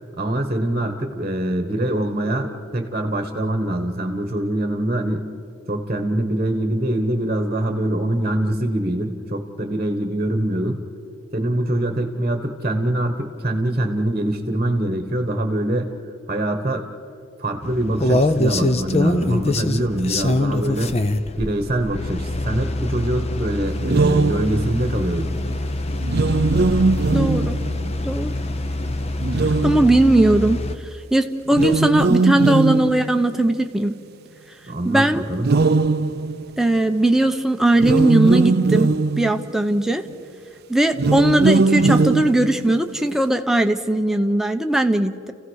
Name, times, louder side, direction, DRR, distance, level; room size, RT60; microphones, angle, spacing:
voice 1, 0.2-5.3 5.7-10.8 11.3-15.9 16.3-16.9 17.4-21.0 21.4-25.3 34.7-35.6, right 1 dB, 25° right, 5 dB, 1.3 m, -24 dB
sound 1, 17.6-30.8, left 1 dB, 30° left, 0.7 m, -24 dB
sound 2, 23.8-24.9 26.0-28.0 29.2-30.3 31.5-33.6 35.4-36.8 37.7-39.7 40.9-42.9, right 3 dB, 45° right, 0.5 m, -20 dB
voice 2, 27.1-27.5 28.0-28.4 29.6-30.6 31.1-34.0 34.8-35.2 36.6-38.9 39.2-40.0 40.7-45.3, right 1 dB, ahead, 6 dB, 0.8 m, -18 dB
30.0 x 16.0 x 6.5 m, 2.5 s
head